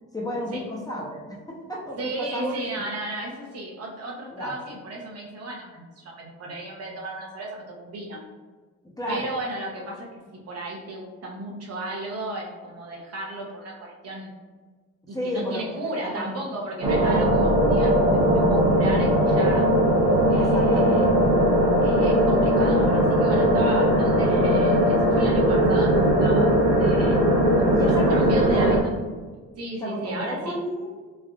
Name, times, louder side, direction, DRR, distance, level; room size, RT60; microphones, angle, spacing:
voice 1, 0.1-2.5 4.3-4.5 9.0-9.3 15.1-15.7 16.0-16.3 17.0-17.2 20.3-21.2 27.7-28.7 29.8-30.9, equal, 10° left, -4 dB, 0.7 m, -31 dB
voice 2, 2.0-8.2 9.1-14.3 15.1-19.7 20.3-21.0 21.8-26.5 26.8-27.2 27.6-28.9 29.6-30.6, right 1 dB, 55° right, -1 dB, 0.8 m, -35 dB
sound 1, 16.8-28.8, equal, 90° right, 0.9 m, -19 dB
3.4 x 2.4 x 2.3 m, 1.4 s
cardioid pair, 90°, 30 cm